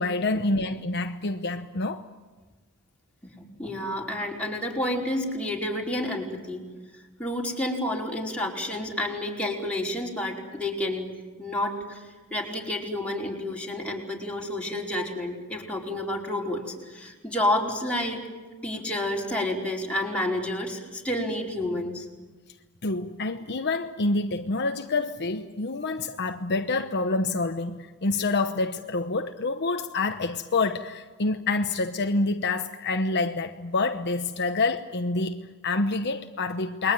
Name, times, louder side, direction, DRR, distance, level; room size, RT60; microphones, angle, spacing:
voice 1, 0.0-2.0 22.8-36.9, left 3 dB, 50° left, 1.0 m, -27 dB
voice 2, 3.6-6.6 7.2-18.2 18.6-22.1, left 1 dB, 5° left, 4.8 m, -30 dB
29.0 x 22.0 x 9.2 m
head